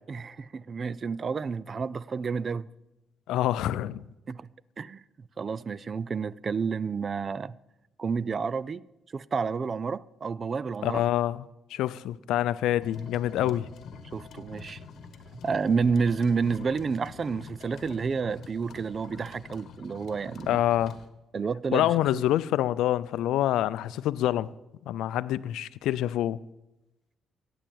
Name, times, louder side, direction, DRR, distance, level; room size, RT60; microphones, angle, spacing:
voice 1, 0.1-2.7 4.3-4.5 4.8-5.0 5.4-7.6 8.0-8.8 9.1-11.0 13.4-13.6 14.1-14.8 15.4-20.6 21.3-22.2, right 5 dB, 40° right, 0.5 m, -30 dB
voice 2, 3.3-4.0 10.8-13.7 20.5-21.0 21.7-24.5 24.9-26.4, left 13 dB, 85° left, 0.4 m, -26 dB
sound 1, 12.8-21.1, left 5 dB, 65° left, 1.5 m, -46 dB
15.0 x 8.9 x 8.6 m
cardioid pair, 90°, 0 cm